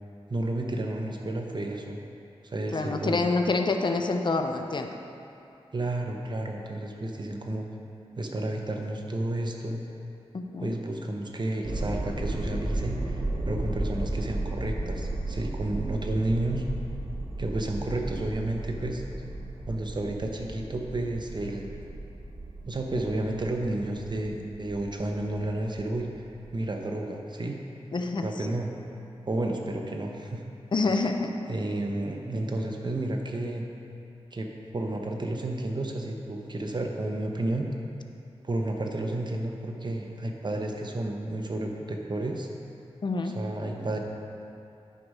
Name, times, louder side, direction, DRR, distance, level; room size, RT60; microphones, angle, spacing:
voice 1, 0.3-2.0 2.4-3.2 5.7-7.7 8.2-9.8 10.6-16.6 17.4-19.0 19.7-21.7 22.7-26.1 26.5-27.6 28.2-28.7 29.2-30.4 30.9-31.0 31.5-33.6 34.3-37.7 38.4-42.5 43.2-44.0, right 1 dB, 45° right, 2 dB, 0.9 m, -31 dB
voice 2, 2.7-4.9 10.3-10.8 27.9-28.3 30.7-31.3 43.0-43.4, left 3 dB, 45° left, 5 dB, 0.5 m, -27 dB
sound 1, 11.6-26.7, right 2 dB, 60° right, 1.3 m, -34 dB
9.9 x 4.7 x 5.4 m, 2.7 s
wide cardioid pair, 80°, 11 cm